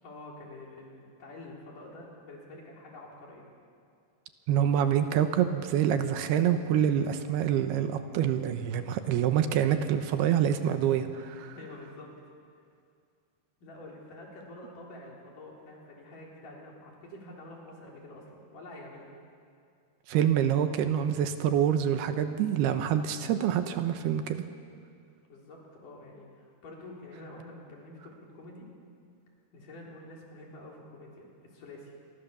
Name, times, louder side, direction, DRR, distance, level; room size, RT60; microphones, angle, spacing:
voice 1, 0.0-3.5 11.5-12.1 13.6-19.1 25.3-28.7 29.5-31.9, left 2 dB, 55° left, -2 dB, 5.1 m, -47 dB
voice 2, 4.5-11.6 20.1-24.4, right 9 dB, 80° right, 8 dB, 2.9 m, -26 dB
27.0 x 23.0 x 6.9 m, 2.3 s
omnidirectional pair, 4.8 m